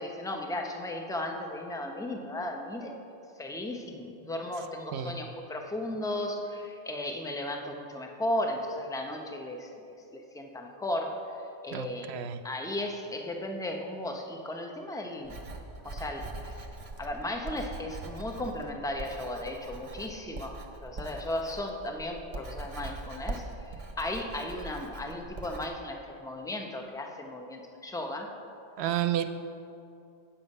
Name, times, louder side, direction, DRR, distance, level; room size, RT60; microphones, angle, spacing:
voice 1, 0.0-2.9 3.4-11.2 11.6-12.1 12.4-15.3 15.8-16.5 17.0-28.3, left 1 dB, 5° left, 2 dB, 0.6 m, -35 dB
voice 2, 11.7-12.4 28.8-29.2, right 11 dB, 80° right, 10 dB, 0.8 m, -30 dB
Writing, 15.2-25.7, right 2 dB, 35° right, 0.8 m, -42 dB
9.1 x 7.4 x 5.4 m, 2.6 s
omnidirectional pair, 1.1 m